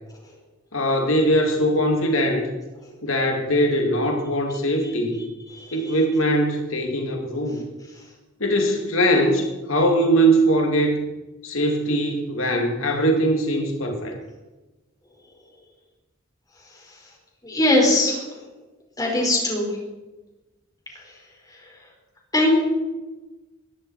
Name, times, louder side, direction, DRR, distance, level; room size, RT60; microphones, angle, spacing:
voice 1, 0.7-2.5 3.0-5.2 5.7-7.6 8.4-11.1 11.4-14.2, right 1 dB, 85° left, 3 dB, 2.5 m, -21 dB
voice 2, 17.4-18.2 19.0-19.7 22.3-22.7, left 1 dB, 20° left, -1 dB, 4.7 m, -20 dB
20.5 x 14.0 x 4.4 m, 1.1 s
head